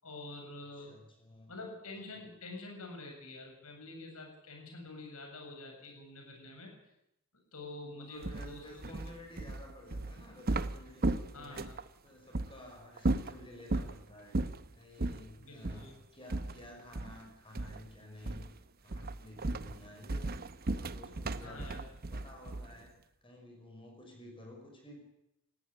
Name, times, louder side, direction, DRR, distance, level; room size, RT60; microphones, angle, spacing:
voice 1, 0.0-0.9 1.5-6.8 7.5-8.8 11.3-11.7 15.4-16.0 21.4-21.8, left 2 dB, 70° left, 2 dB, 7.6 m, -47 dB
voice 2, 0.7-1.5 7.9-11.8 12.0-14.4 14.7-18.5 18.8-20.4 20.7-21.7 22.1-25.0, left 1 dB, 25° left, 2 dB, 5.7 m, -52 dB
sound 1, 8.2-11.9 12.3-12.5 13.0-13.9 14.3-14.6 15.0-15.2 15.6-15.9 16.3-17.3 17.5-17.9 18.2-18.6 18.9-22.8, right 2 dB, 45° right, 0.8 m, -35 dB
19.5 x 15.5 x 9.8 m, 0.83 s
head